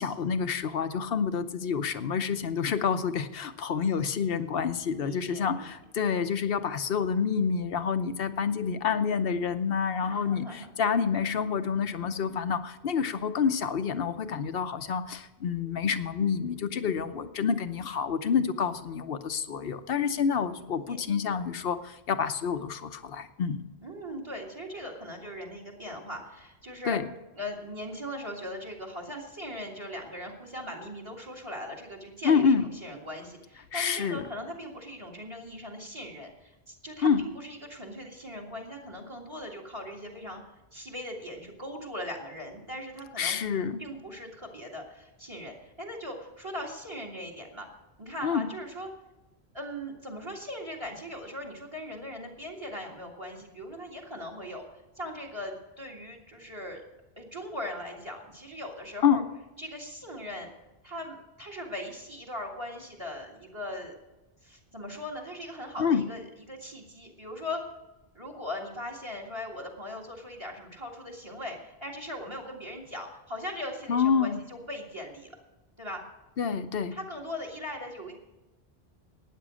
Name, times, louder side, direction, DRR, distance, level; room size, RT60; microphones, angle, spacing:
voice 1, 0.0-23.6 26.9-27.1 32.2-32.6 33.7-34.2 37.0-37.2 43.2-43.8 48.2-48.5 59.0-59.2 65.8-66.1 73.9-74.4 76.4-76.9, left 6 dB, 65° left, 10 dB, 1.0 m, -28 dB
voice 2, 4.9-5.7 10.0-10.7 20.6-21.0 23.8-27.0 27.3-40.4 40.7-43.4 43.8-47.7 48.0-48.9 49.5-56.8 57.2-59.2 59.6-60.5 60.8-63.9 64.4-67.6 68.1-75.3 75.8-76.0 76.5-76.6 76.9-78.2, left 1 dB, 25° right, 1 dB, 2.1 m, -39 dB
12.5 x 9.4 x 6.3 m, 1.0 s
omnidirectional pair, 1.1 m